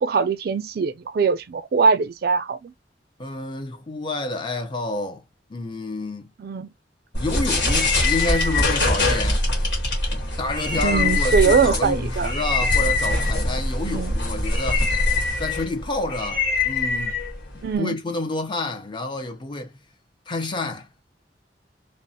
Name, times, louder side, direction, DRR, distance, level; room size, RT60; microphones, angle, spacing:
voice 1, 0.0-2.7 6.4-6.7 10.8-12.3 13.8-14.1 17.6-18.0, right 5 dB, 60° right, 0.4 m, -22 dB
voice 2, 3.2-5.2 5.5-6.3 7.2-9.4 10.4-14.9 15.4-17.2 17.5-19.8 20.3-20.9, left 2 dB, 25° left, 0.5 m, -29 dB
sound 1, 7.1-17.8, left 2 dB, 75° left, 1.4 m, -23 dB
2.9 x 2.0 x 2.7 m
head